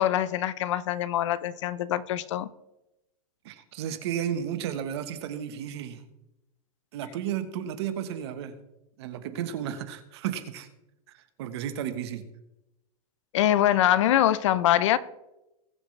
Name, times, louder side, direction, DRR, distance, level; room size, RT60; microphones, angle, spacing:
voice 1, 0.0-2.5 13.3-15.0, left 12 dB, 55° left, 0.6 m, -24 dB
voice 2, 3.4-6.0 6.9-8.6 9.0-10.7 11.1-12.3, right 9 dB, 45° right, 1.3 m, -33 dB
21.0 x 7.7 x 3.3 m
supercardioid pair, 175°, 19 cm